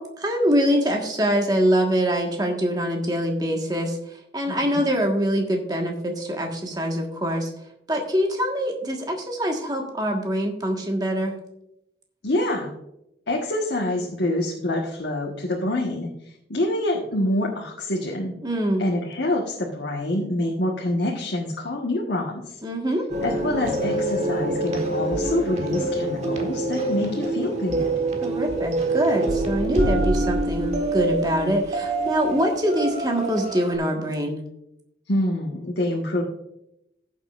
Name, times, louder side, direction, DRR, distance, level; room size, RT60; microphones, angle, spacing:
voice 1, 0.0-4.0 4.3-7.5 7.9-11.3 18.4-18.8 22.6-23.1 28.2-34.4, equal, 20° right, 2 dB, 1.5 m, -24 dB
voice 2, 4.5-4.8 12.2-12.7 13.3-18.3 18.8-22.6 23.2-27.9 35.1-36.2, left 1 dB, 70° left, -2 dB, 1.4 m, -26 dB
sound 1, 23.1-33.7, right 2 dB, 40° right, 1.4 m, -26 dB
16.5 x 7.4 x 2.5 m, 0.83 s
head